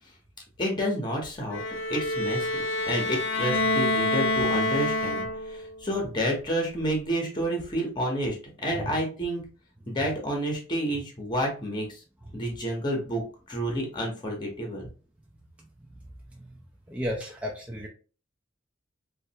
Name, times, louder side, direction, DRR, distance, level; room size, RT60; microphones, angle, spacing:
voice 1, 0.6-1.6 1.9-8.4 8.6-9.4 9.9-12.0 12.3-13.2 13.5-14.9, equal, 25° left, 1 dB, 0.9 m, -29 dB
Bowed string instrument, 1.5-5.7, left 2 dB, 80° left, 0.6 m, -27 dB
voice 2, 16.9-17.9, equal, 5° right, -2 dB, 0.5 m, -33 dB
3.2 x 2.4 x 2.8 m, 0.36 s
head